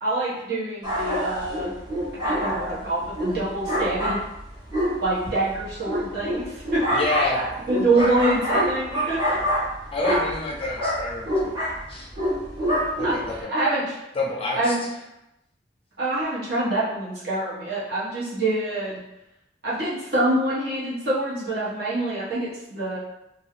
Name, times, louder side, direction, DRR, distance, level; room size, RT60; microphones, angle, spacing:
voice 1, 0.0-1.7 2.2-4.2 5.0-7.0 7.7-9.4 13.0-13.1 13.5-14.0 14.5-14.7 16.0-19.0 19.6-23.0, right 2 dB, 60° right, -9 dB, 1.3 m, -25 dB
sound 1, 0.8-13.4, equal, 20° right, 1.0 m, -27 dB
voice 2, 6.9-7.4 9.9-11.6 11.9-12.1 13.0-13.5 14.1-14.7, left 2 dB, 30° left, -1 dB, 0.5 m, -28 dB
2.6 x 2.2 x 3.6 m, 0.87 s
head